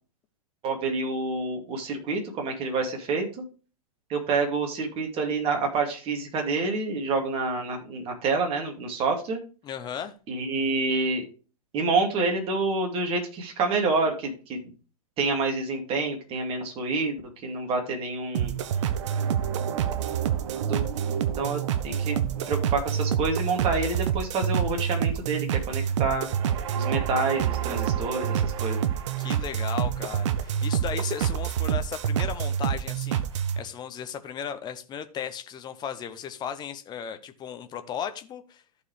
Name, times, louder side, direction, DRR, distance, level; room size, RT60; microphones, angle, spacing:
voice 1, 0.6-3.4 4.1-9.4 10.3-11.2 11.7-14.7 15.2-18.5 20.7-20.9 21.4-22.2 22.5-26.3 26.8-28.8, right 3 dB, 30° right, 2.6 m, -28 dB
voice 2, 9.6-10.1 29.2-38.6, left 8 dB, 20° left, 1.0 m, -36 dB
sound 1, 18.3-33.6, right 9 dB, 50° right, 0.7 m, -27 dB
14.0 x 4.9 x 3.4 m
figure-of-eight pair, 105°, 19 cm